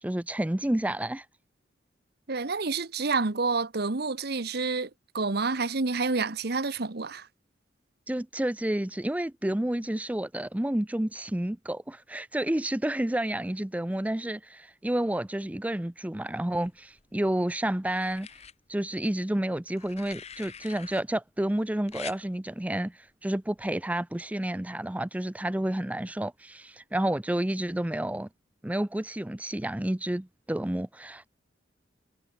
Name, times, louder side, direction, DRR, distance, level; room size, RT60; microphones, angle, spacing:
voice 1, 0.0-1.3 8.1-18.3 18.7-28.3 28.6-31.3, right 1 dB, 10° right, 0.5 m, -30 dB
voice 2, 2.3-4.9 5.1-7.3, right 4 dB, 55° right, 1.1 m, -28 dB
sound 1, 16.6-17.3 17.9-18.5 19.7-21.0 21.9-22.2 23.6-23.8, left 7 dB, 35° left, 1.9 m, -45 dB
head